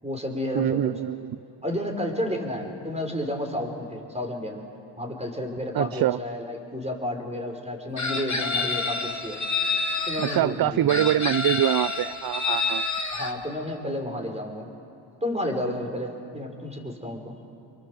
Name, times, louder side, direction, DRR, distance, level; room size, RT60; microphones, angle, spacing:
voice 1, 0.0-0.9 1.6-4.7 5.0-9.4 10.1-11.1 13.1-14.7 15.2-17.3, left 1 dB, 15° right, 2 dB, 5.9 m, -31 dB
voice 2, 0.5-1.4 5.7-6.2 10.2-12.8, right 12 dB, 50° right, 18 dB, 0.5 m, -24 dB
Chicken rooster, 8.0-10.4 10.9-13.3, left 4 dB, 40° left, 2.3 m, -28 dB
28.5 x 23.0 x 7.9 m, 2.6 s
supercardioid pair, 50°, 45 cm